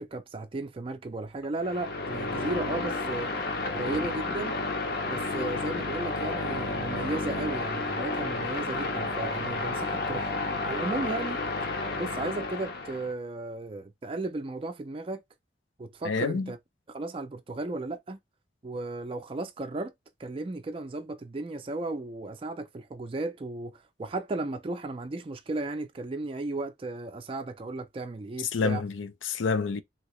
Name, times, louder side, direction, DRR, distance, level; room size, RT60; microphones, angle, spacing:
voice 1, 0.0-3.3 3.7-4.6 5.0-10.3 10.6-11.4 11.9-15.2 15.8-16.6 16.9-18.2 18.6-19.9 20.2-28.8, right 2 dB, 30° right, 0.4 m, -35 dB
sound 1, 1.6-13.1, left 3 dB, 55° left, 0.7 m, -31 dB
voice 2, 16.0-16.5 28.5-29.8, left 4 dB, 85° left, 0.5 m, -28 dB
2.9 x 2.8 x 3.0 m
head